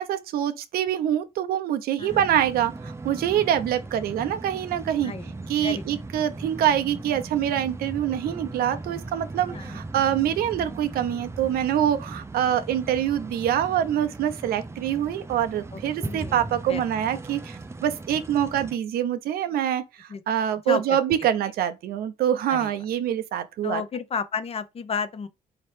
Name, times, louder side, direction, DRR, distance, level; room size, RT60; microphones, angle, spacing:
voice 1, 0.0-5.1 5.5-23.8, right 10 dB, 90° right, 0.6 m, -25 dB
sound 1, 2.1-18.8, right 3 dB, 15° right, 0.5 m, -38 dB
voice 2, 5.0-5.3 5.6-5.8 9.5-9.8 15.7-16.4 16.7-16.8 20.1-20.2 20.7-20.8 22.5-22.7 23.6-25.3, left 6 dB, 40° left, 0.6 m, -32 dB
4.2 x 2.9 x 3.2 m
cardioid pair, 90°, 15 cm